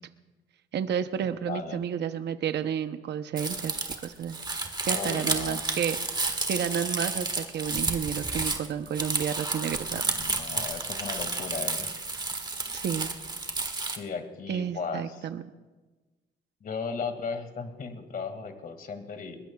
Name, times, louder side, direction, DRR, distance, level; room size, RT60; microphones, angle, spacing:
voice 1, 0.7-4.4 4.8-10.0 12.7-13.1 14.5-15.4, right 8 dB, 60° right, 9 dB, 0.8 m, -31 dB
voice 2, 1.5-1.8 4.9-5.6 9.9-11.9 14.0-15.3 16.6-19.4, left 5 dB, 45° left, 6 dB, 2.1 m, -36 dB
Crumpling crinkling, 3.4-14.0, right 3 dB, 20° right, 1.6 m, -31 dB
21.5 x 20.0 x 2.4 m, 1.2 s
cardioid pair, 90°, 20 cm